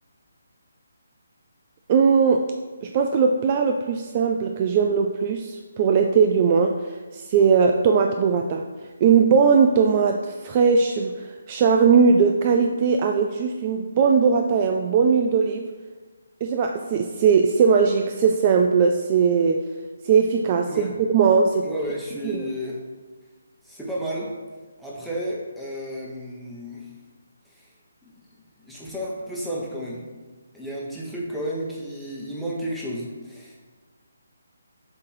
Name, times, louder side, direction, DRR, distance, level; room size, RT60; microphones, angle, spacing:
voice 1, 1.9-2.5 2.8-8.6 9.0-15.7 16.4-19.7 20.0-21.7 22.2-22.4, right 5 dB, 30° right, 4 dB, 0.3 m, -19 dB
voice 2, 21.6-22.8 23.6-24.3 24.8-26.9 28.6-30.0 30.5-33.7, equal, ahead, -6 dB, 1.1 m, -32 dB
7.3 x 3.0 x 4.6 m, 1.4 s
figure-of-eight pair, 145°, 0 cm